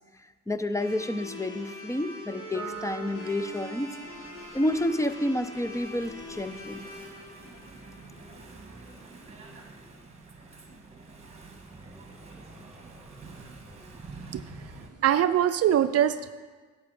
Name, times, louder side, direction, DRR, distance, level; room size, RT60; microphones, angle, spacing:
voice 1, 0.5-4.0 4.5-6.8, left 1 dB, 10° left, 11 dB, 0.5 m, -29 dB
sound 1, 0.8-8.9, left 1 dB, 80° left, 3.7 m, -43 dB
Piano, 2.5-9.2, right 3 dB, 45° left, 2.2 m, -48 dB
Engine / Mechanisms, 2.7-14.9, right 3 dB, 20° right, 1.6 m, -48 dB
voice 2, 15.0-16.3, right 10 dB, 55° right, 11 dB, 0.5 m, -23 dB
11.0 x 7.1 x 4.9 m, 1.4 s
cardioid pair, 90°, 30 cm